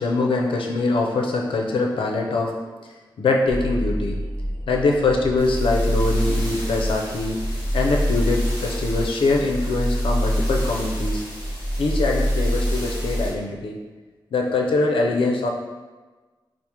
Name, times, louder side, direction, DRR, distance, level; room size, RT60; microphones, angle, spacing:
voice 1, 0.0-2.5 3.2-4.2 4.7-7.4 7.7-11.2 11.8-13.8 14.3-15.5, left 3 dB, 90° left, 0 dB, 0.5 m, -23 dB
sound 1, 3.5-13.3, equal, 25° left, 1.2 m, -25 dB
4.7 x 2.0 x 2.9 m, 1.3 s
wide cardioid pair, 130°, 9 cm